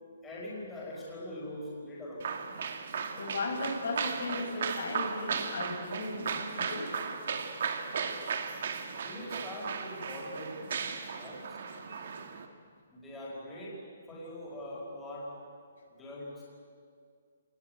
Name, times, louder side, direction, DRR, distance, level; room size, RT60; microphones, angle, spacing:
voice 1, 0.2-2.3 8.9-10.6 11.0-11.6 12.9-13.8 14.1-15.3 15.9-16.4, left 1 dB, 10° left, -5 dB, 5.0 m, -42 dB
sound 1, 2.2-12.5, right 6 dB, 55° right, 2.2 m, -36 dB
voice 2, 3.2-6.9 10.9-11.4 11.8-12.3, left 2 dB, 65° left, 2 dB, 5.6 m, -37 dB
26.0 x 19.5 x 9.5 m, 2.1 s
hypercardioid pair, 175°, 0 cm